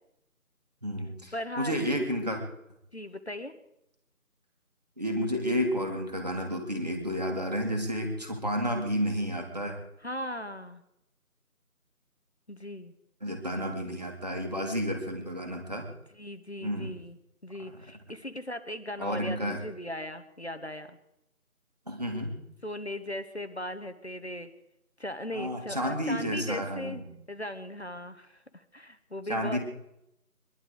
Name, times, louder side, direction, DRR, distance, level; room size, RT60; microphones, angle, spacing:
voice 1, 0.8-2.4 5.0-9.8 13.2-15.9 16.6-16.9 17.7-17.9 19.0-19.6 21.9-22.3 25.3-27.0 29.3-29.6, equal, 25° right, 2 dB, 2.2 m, -31 dB
voice 2, 1.3-2.0 2.9-3.5 10.0-10.8 12.5-12.9 16.1-17.2 17.4-21.0 22.6-24.5 25.0-27.0 27.3-29.6, left 1 dB, 45° left, 9 dB, 1.1 m, -38 dB
23.5 x 11.5 x 4.9 m, 0.83 s
figure-of-eight pair, 175°, 45 cm